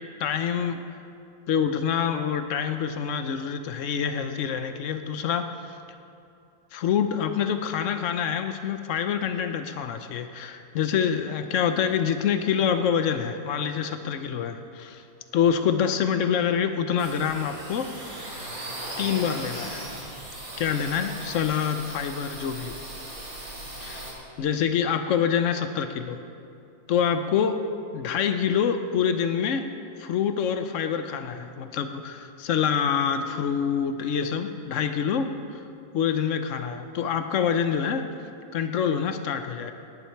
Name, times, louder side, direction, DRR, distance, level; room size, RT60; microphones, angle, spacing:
voice 1, 0.2-0.8 1.5-5.8 6.7-15.0 15.3-17.9 19.0-20.0 20.6-22.8 23.8-26.2 26.9-27.6 27.9-29.7 30.0-35.6 35.9-38.0 38.5-39.7, left 7 dB, 80° left, 8 dB, 0.7 m, -26 dB
sound 1, 17.0-24.1, right 1 dB, 70° right, 4.1 m, -38 dB
19.0 x 10.0 x 4.6 m, 2.5 s
omnidirectional pair, 2.1 m